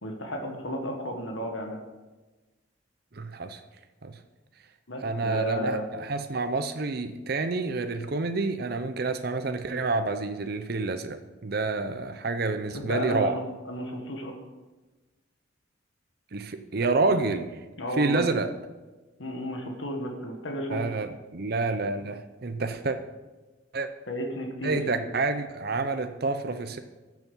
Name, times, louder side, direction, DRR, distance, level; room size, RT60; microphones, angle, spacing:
voice 1, 0.0-1.8 4.9-5.9 12.7-13.3 13.6-14.3 17.8-18.2 19.2-20.9 24.1-24.8, equal, 75° left, 2 dB, 1.7 m, -33 dB
voice 2, 3.1-3.6 4.0-4.2 5.0-13.4 16.3-17.5 18.0-18.5 20.7-23.0 23.7-23.9 24.6-26.8, right 3 dB, 50° right, 8 dB, 0.6 m, -28 dB
13.5 x 7.1 x 5.6 m, 1.2 s
head